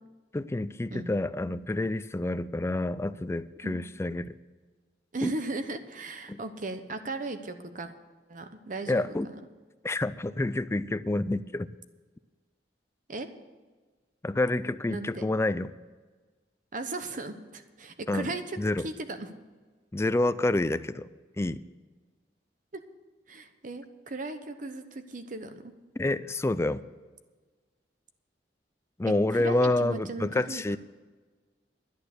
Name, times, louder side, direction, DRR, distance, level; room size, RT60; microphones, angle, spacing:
voice 1, 0.3-4.3 5.2-5.3 6.3-6.4 8.9-9.3 9.8-11.7 14.2-15.7 18.1-18.3 18.6-18.9 19.9-21.1 21.4-21.6 26.0-26.8 29.0-30.8, left 2 dB, 15° left, 14 dB, 0.4 m, -28 dB
voice 2, 5.1-7.9 8.3-9.4 13.1-13.3 14.9-15.3 16.7-19.3 23.3-25.7 29.3-30.8, right 2 dB, 50° right, 9 dB, 1.0 m, -37 dB
11.0 x 9.8 x 6.7 m, 1.4 s
head